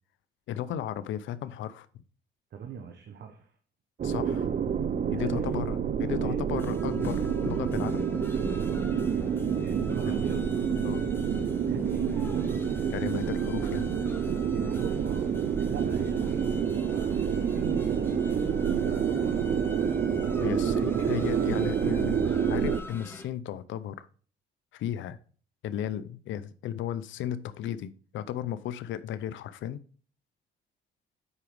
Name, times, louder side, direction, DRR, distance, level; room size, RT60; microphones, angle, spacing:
voice 1, 0.5-1.9 4.0-4.5 5.1-8.1 10.1-10.2 10.8-11.0 12.9-13.9 20.4-24.1 24.7-25.2 25.6-29.8, left 10 dB, 75° left, 0.6 m, -35 dB
voice 2, 2.5-3.5 5.1-5.6 6.0-6.4 9.6-10.4 11.6-12.9 14.5-15.3 15.6-18.2 18.8-19.7 20.6-22.1, right 7 dB, 60° right, 1.2 m, -41 dB
sound 1, 4.0-22.8, right 7 dB, 40° right, 0.5 m, -28 dB
sound 2, 6.6-23.3, left 2 dB, 10° left, 1.3 m, -43 dB
8.3 x 5.0 x 4.7 m
cardioid pair, 90°, 20 cm